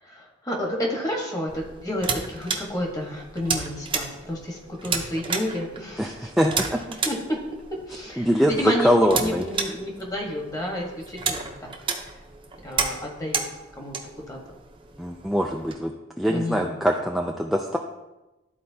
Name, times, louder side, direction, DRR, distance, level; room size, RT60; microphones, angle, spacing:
voice 1, 0.0-6.3 6.9-7.4 7.9-12.1 12.6-13.4 13.8-14.4 16.2-16.7, left 1 dB, 20° left, 0 dB, 1.3 m, -31 dB
sound 1, 1.5-15.7, right 5 dB, 30° right, 0.7 m, -33 dB
voice 2, 6.0-6.8 8.2-9.4 15.0-17.8, equal, ahead, 0 dB, 0.3 m, -23 dB
12.5 x 4.3 x 2.8 m, 1.0 s
head